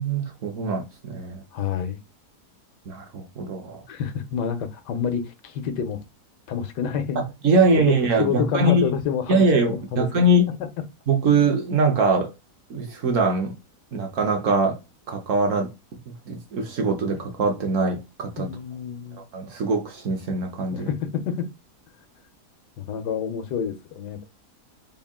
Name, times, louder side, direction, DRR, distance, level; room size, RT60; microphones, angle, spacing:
voice 1, 0.0-1.4 2.9-3.8 7.4-8.9 9.3-10.4 11.1-12.3 12.7-13.5 13.9-14.8 15.1-15.7 16.3-18.5 19.3-20.9, right 2 dB, 60° right, 0.9 m, -22 dB
voice 2, 1.5-2.0 3.9-6.0 6.5-7.2 7.7-10.1 10.5-10.6 18.4-19.2 20.7-21.5 22.8-24.3, left 7 dB, 90° left, 1.3 m, -28 dB
3.6 x 2.3 x 3.5 m
omnidirectional pair, 1.8 m